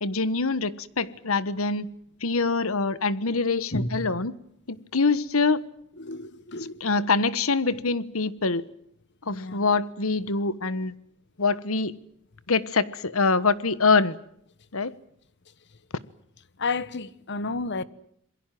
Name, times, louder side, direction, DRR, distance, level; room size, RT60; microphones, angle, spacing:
voice 1, 0.0-1.9 2.2-4.3 4.7-5.6 6.8-8.7 9.3-10.9 11.4-11.9 12.5-14.2 14.7-14.9, left 4 dB, 80° left, 1.3 m, -24 dB
voice 2, 3.7-4.1 6.0-6.8 9.3-9.6 16.6-17.8, left 3 dB, 55° left, 1.3 m, -31 dB
27.5 x 22.5 x 7.7 m
head